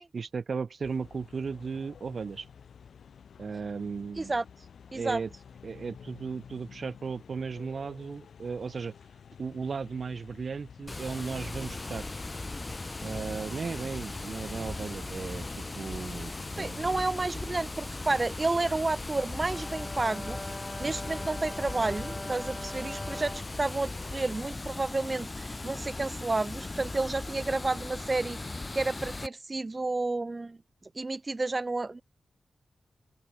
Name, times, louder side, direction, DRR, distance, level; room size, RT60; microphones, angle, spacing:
voice 1, 0.1-2.5 3.4-4.3 4.9-5.3 5.6-8.9 9.4-12.1 13.0-17.1, right 5 dB, 65° right, 0.7 m, -36 dB
sound 1, 0.8-17.0, left 7 dB, 80° left, 3.7 m, -52 dB
Water, 10.9-29.3, left 2 dB, 30° left, 3.6 m, -38 dB
voice 2, 16.6-20.4 20.8-28.4 28.7-30.6 30.9-32.0, right 3 dB, 35° right, 1.4 m, -31 dB
Brass instrument, 19.2-23.5, left 1 dB, 15° left, 1.8 m, -42 dB
open air
cardioid pair, 55°, 0 cm